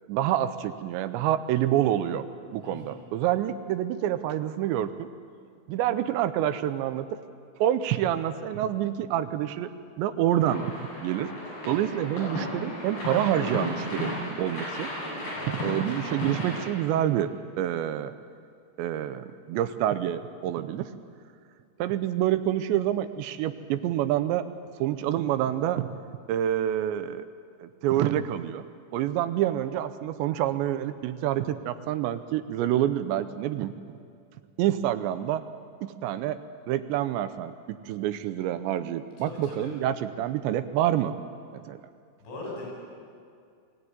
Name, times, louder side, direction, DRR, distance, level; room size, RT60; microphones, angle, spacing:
voice 1, 0.1-2.2 2.5-5.1 5.7-7.2 7.6-10.7 11.0-11.3 11.7-14.1 14.4-14.9 15.5-17.3 17.6-18.1 18.8-20.9 21.8-24.5 24.8-25.9 26.3-27.3 27.6-28.6 28.9-33.7 34.6-35.4 35.8-36.4 36.7-41.1 41.5-41.8, right 12 dB, 80° right, 11 dB, 2.8 m, -27 dB
voice 2, 2.6-3.0 15.3-15.8 39.2-39.7 42.2-42.6, left 2 dB, 85° left, -4 dB, 10.0 m, -40 dB
sound 1, 10.4-16.6, equal, 55° left, 9.2 m, -34 dB
22.5 x 16.5 x 9.6 m, 2.2 s
omnidirectional pair, 5.4 m